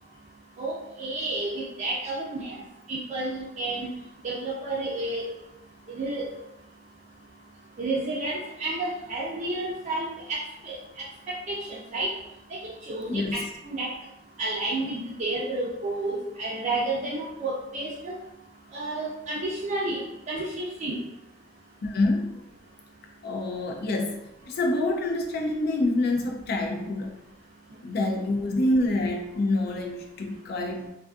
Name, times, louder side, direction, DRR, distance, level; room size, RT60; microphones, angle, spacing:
voice 1, 0.6-2.6 2.9-3.9 4.2-5.2 5.9-6.3 7.8-10.8 11.3-12.1 12.5-12.6 12.9-13.4 13.6-13.9 14.4-18.2 18.7-20.0 20.3-21.0, right 2 dB, 40° right, -5 dB, 0.4 m, -31 dB
voice 2, 13.1-13.5 21.8-22.4 23.2-24.2 24.5-27.2 27.8-30.9, left 2 dB, 55° left, 2 dB, 0.4 m, -26 dB
2.5 x 2.4 x 2.3 m, 0.86 s
head